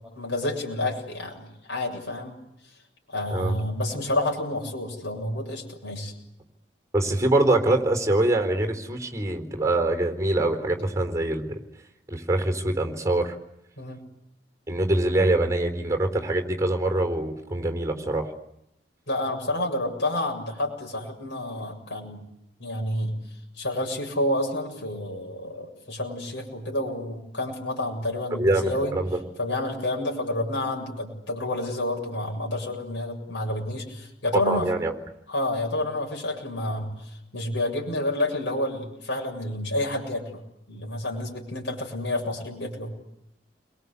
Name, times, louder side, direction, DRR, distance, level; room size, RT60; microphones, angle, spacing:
voice 1, 0.2-2.4 3.1-6.1 13.8-14.0 19.1-22.3 22.6-23.2 23.6-29.0 29.4-34.7 35.3-40.4 40.7-42.9, left 1 dB, 85° left, 0 dB, 7.5 m, -29 dB
voice 2, 6.9-11.6 12.1-13.3 14.7-18.3 28.3-29.1 34.5-34.9, right 2 dB, 15° right, 5 dB, 4.1 m, -24 dB
30.0 x 22.5 x 8.4 m, 0.81 s
head